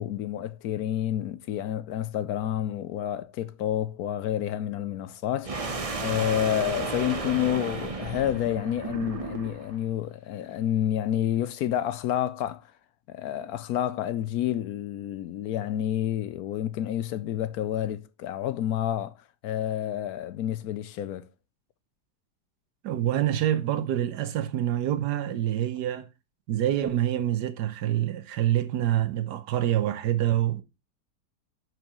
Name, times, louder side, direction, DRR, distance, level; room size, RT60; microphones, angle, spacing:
voice 1, 0.0-12.7 13.1-19.1 19.4-21.3, left 11 dB, 70° left, 1.0 m, -29 dB
sound 1, 5.4-9.8, right 3 dB, 30° right, 0.8 m, -33 dB
voice 2, 22.8-26.1 26.5-30.6, right 12 dB, 80° right, 1.4 m, -26 dB
10.5 x 6.3 x 3.0 m
omnidirectional pair, 1.8 m